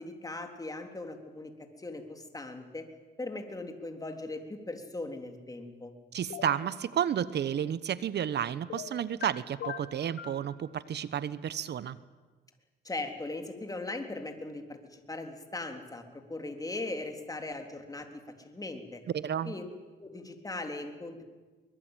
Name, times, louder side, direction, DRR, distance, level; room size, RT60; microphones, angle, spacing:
voice 1, 0.0-2.9 3.2-5.9 12.8-19.0 19.4-19.6 20.0-21.2, left 2 dB, 20° left, 5 dB, 3.5 m, -39 dB
voice 2, 6.1-12.0 19.1-19.5, right 9 dB, 60° right, 16 dB, 1.0 m, -32 dB
sound 1, 6.3-6.7 8.7-9.3 9.6-10.4, left 8 dB, 75° left, 3.0 m, -39 dB
23.5 x 22.0 x 9.1 m, 1.3 s
cardioid pair, 90°, 20 cm